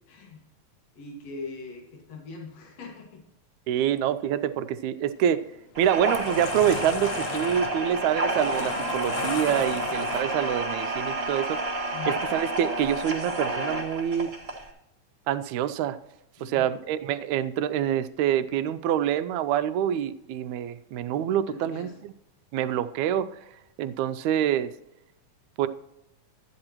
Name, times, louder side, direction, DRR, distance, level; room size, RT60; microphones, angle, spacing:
voice 1, 0.1-0.4 0.9-3.2 3.7-3.9 11.9-12.2 16.4-16.7 21.5-21.9, left 4 dB, 60° left, 0 dB, 2.9 m, -41 dB
voice 2, 3.7-5.5 5.8-11.6 12.1-14.3 15.3-16.0 16.4-22.1 22.5-23.3 23.8-24.7 25.6-25.7, right 10 dB, 80° right, 11 dB, 1.9 m, -26 dB
sound 1, 5.2-5.4 5.9-10.6, left 12 dB, 85° left, 1.4 m, -37 dB
sound 2, 5.7-14.7, right 1 dB, 25° right, 1.6 m, -30 dB
13.5 x 9.7 x 2.9 m, 0.86 s
omnidirectional pair, 3.4 m